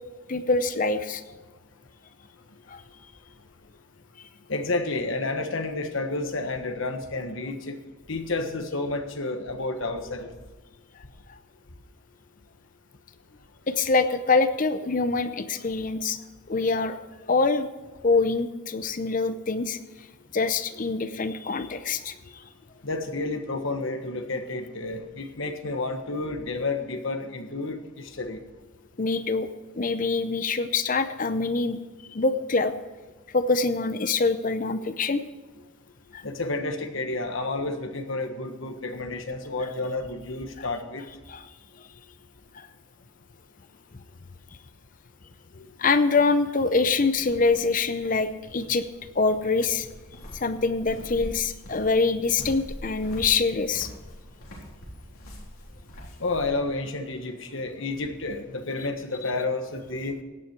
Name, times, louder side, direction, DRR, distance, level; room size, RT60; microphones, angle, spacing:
voice 1, 0.3-1.2 2.7-2.8 13.7-16.2 16.5-17.0 17.3-17.7 18.0-19.8 20.3-22.4 29.0-29.5 29.7-31.8 32.1-32.7 33.3-35.2 36.1-36.2 41.3-41.4 42.5-42.7 45.6-48.9 49.2-49.9 50.3-53.9, left 4 dB, 40° left, 11 dB, 0.6 m, -25 dB
voice 2, 4.5-7.8 8.1-10.3 22.8-28.4 36.2-41.0 56.2-60.2, left 2 dB, 65° left, 6 dB, 1.4 m, -30 dB
sound 1, 47.1-56.6, equal, 80° left, 3.8 m, -43 dB
16.5 x 9.5 x 4.6 m, 1.3 s
head